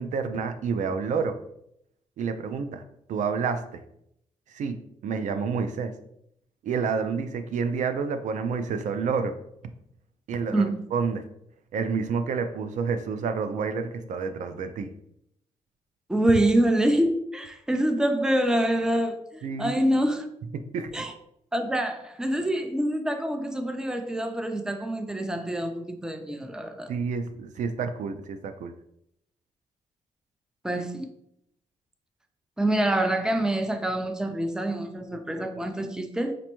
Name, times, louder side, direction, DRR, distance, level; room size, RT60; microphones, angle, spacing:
voice 1, 0.0-1.4 2.2-2.8 3.1-3.8 4.5-5.9 6.6-9.3 10.3-11.3 11.7-14.9 19.4-19.8 20.5-20.9 26.9-28.7, right 5 dB, 70° right, 8 dB, 0.4 m, -29 dB
voice 2, 16.1-20.3 20.9-21.1 21.5-26.9 30.6-31.1 32.6-36.4, right 1 dB, 5° right, 7 dB, 0.4 m, -26 dB
5.1 x 2.2 x 2.9 m, 0.75 s
cardioid pair, 65°, 13 cm